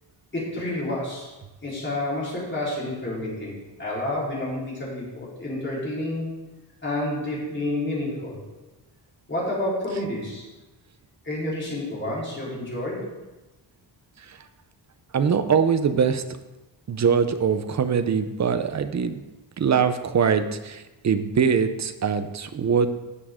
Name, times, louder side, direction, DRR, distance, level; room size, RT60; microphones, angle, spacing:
voice 1, 0.3-1.3 1.6-6.3 6.8-8.4 9.3-10.4 11.2-13.1, left 1 dB, 25° left, -7 dB, 4.0 m, -29 dB
voice 2, 15.1-16.2 16.9-19.1 19.6-22.9, right 6 dB, 40° right, 10 dB, 0.6 m, -22 dB
15.0 x 7.2 x 3.7 m, 1.1 s
wide cardioid pair, 180°, 45 cm